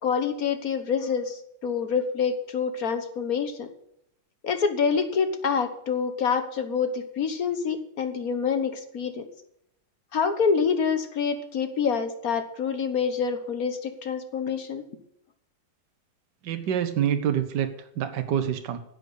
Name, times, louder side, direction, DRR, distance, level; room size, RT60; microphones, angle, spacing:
voice 1, 0.0-3.7 4.4-9.2 10.1-14.8, left 6 dB, 55° left, 9 dB, 1.6 m, -26 dB
voice 2, 16.4-18.8, right 9 dB, 75° right, 7 dB, 1.6 m, -27 dB
10.5 x 7.9 x 8.1 m, 0.74 s
omnidirectional pair, 1.9 m